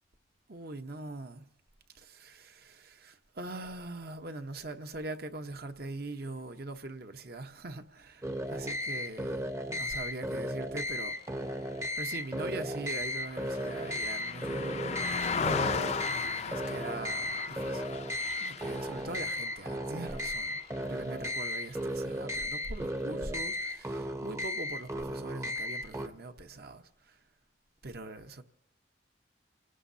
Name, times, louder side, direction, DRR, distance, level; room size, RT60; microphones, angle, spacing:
voice 1, 0.5-1.5 1.9-11.2 12.0-16.0 16.5-18.1 18.4-26.8 27.8-28.4, right 2 dB, 55° right, 1.0 m, -42 dB
sound 1, 8.2-26.1, left 1 dB, 15° right, 0.7 m, -35 dB
Car passing by, 11.8-21.4 21.8-22.0, left 5 dB, 35° left, 0.5 m, -38 dB
29.5 x 17.5 x 2.8 m
head